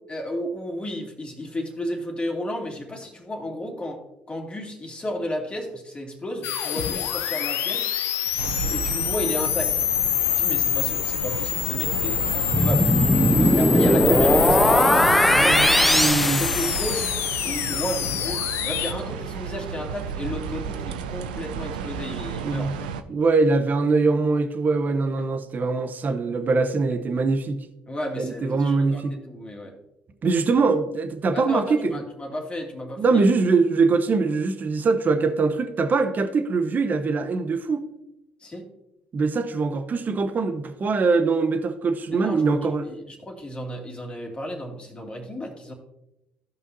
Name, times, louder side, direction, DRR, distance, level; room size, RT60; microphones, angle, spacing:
voice 1, 0.1-7.9 8.5-9.8 10.2-12.9 13.5-15.7 16.2-17.1 17.4-22.7 25.2-25.3 27.9-29.8 31.3-33.2 38.4-38.7 42.1-42.6 42.8-45.7, left 1 dB, 25° left, 1 dB, 2.5 m, -33 dB
sound 1, 6.4-18.9, left 11 dB, 65° left, 0.7 m, -26 dB
sound 2, 8.4-23.0, right 7 dB, 90° right, 0.5 m, -32 dB
sound 3, 12.5-17.3, equal, ahead, 0.4 m, -19 dB
voice 2, 15.4-16.4 22.4-22.7 23.1-27.7 28.2-29.2 30.2-31.8 33.0-37.8 39.1-42.9, right 4 dB, 40° right, 7 dB, 0.8 m, -22 dB
15.0 x 5.5 x 2.7 m, 0.92 s
hypercardioid pair, 65°, 5 cm